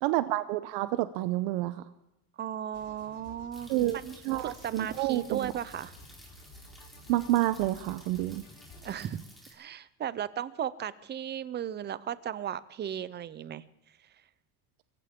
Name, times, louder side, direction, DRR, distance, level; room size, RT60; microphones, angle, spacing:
voice 1, 0.0-1.8 3.7-4.0 4.2-5.5 7.1-8.4, right 15 dB, 85° right, 12 dB, 0.9 m, -29 dB
voice 2, 2.4-3.7 4.0-5.9 8.8-9.2 9.5-13.6, right 10 dB, 25° right, 17 dB, 0.6 m, -36 dB
sound 1, 2.7-9.2, left 2 dB, 90° left, 6.7 m, -52 dB
sound 2, 3.5-9.5, equal, ahead, 3.5 m, -54 dB
24.5 x 15.0 x 3.7 m, 0.88 s
cardioid pair, 160°, 42 cm